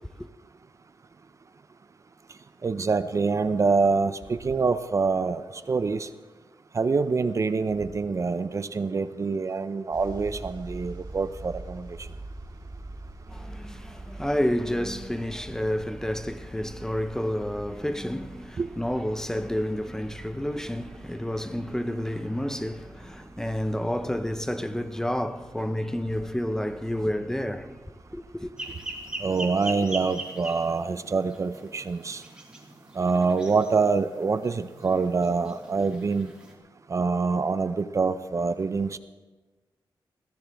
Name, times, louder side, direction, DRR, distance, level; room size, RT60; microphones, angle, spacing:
voice 1, 2.6-5.4 5.7-6.1 6.7-11.9 18.6-18.7 29.2-32.2 33.0-36.3 36.9-39.0, right 4 dB, 40° right, 0.5 m, -25 dB
sound 1, 9.9-29.1, right 2 dB, 55° right, 2.2 m, -45 dB
voice 2, 13.3-27.8 28.1-28.5, equal, 5° left, 0.6 m, -30 dB
sound 2, 28.6-36.5, right 1 dB, 10° right, 2.4 m, -41 dB
21.0 x 15.5 x 3.5 m
wide cardioid pair, 130°, 8 cm